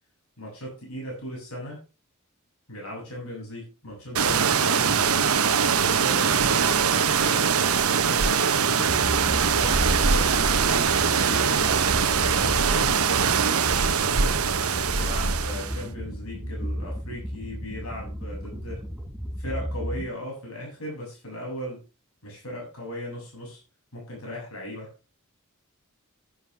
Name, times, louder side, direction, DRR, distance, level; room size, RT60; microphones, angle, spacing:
voice 1, 0.4-1.8 2.7-5.3 5.7-7.5 7.8-8.9 9.5-13.0 13.3-14.4 14.9-18.9 19.4-21.8 22.2-23.6 23.9-24.9, equal, 85° left, -2 dB, 7.3 m, -37 dB
sound 1, 4.1-15.8, right 6 dB, 85° right, 1.1 m, -22 dB
sound 2, 8.8-20.1, equal, 5° right, 4.3 m, -34 dB
12.5 x 10.5 x 3.5 m, 0.30 s
head